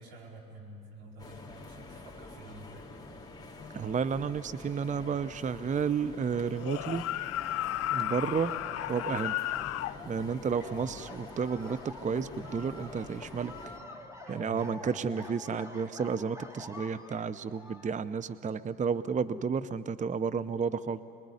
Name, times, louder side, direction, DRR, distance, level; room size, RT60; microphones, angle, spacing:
voice 1, 0.0-2.9 7.9-8.2 10.7-10.9 14.2-15.2, right 1 dB, 85° right, -3 dB, 4.8 m, -49 dB
sound 1, 1.2-13.8, left 2 dB, 15° left, 3.3 m, -47 dB
voice 2, 3.7-7.0 7.9-8.5 8.9-9.4 10.1-13.5 14.3-21.0, right 6 dB, 25° right, 14 dB, 0.7 m, -32 dB
sound 2, 6.6-10.0, left 14 dB, 55° left, 0.7 m, -33 dB
sound 3, 8.5-18.0, left 2 dB, 10° right, 2.9 m, -48 dB
25.5 x 21.5 x 9.8 m, 2.8 s
hypercardioid pair, 55°, 30 cm